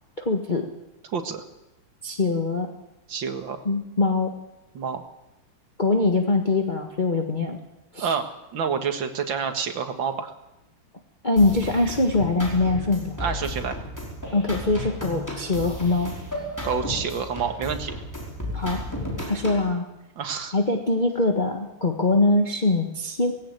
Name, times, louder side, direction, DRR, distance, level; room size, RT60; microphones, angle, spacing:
voice 1, 0.2-0.7 2.0-2.7 3.6-4.3 5.8-7.6 7.9-8.1 11.2-13.2 14.3-16.1 18.5-18.8 19.3-19.8 20.5-23.3, left 2 dB, 25° left, 2 dB, 1.5 m, -23 dB
voice 2, 1.1-1.4 3.1-3.6 4.7-5.0 8.0-8.3 8.5-10.3 13.2-13.8 16.6-17.9 20.2-20.5, right 6 dB, 60° right, 7 dB, 2.3 m, -28 dB
sound 1, 11.4-19.7, left 1 dB, 5° left, 5.2 m, -34 dB
18.5 x 16.5 x 9.2 m, 0.94 s
omnidirectional pair, 2.4 m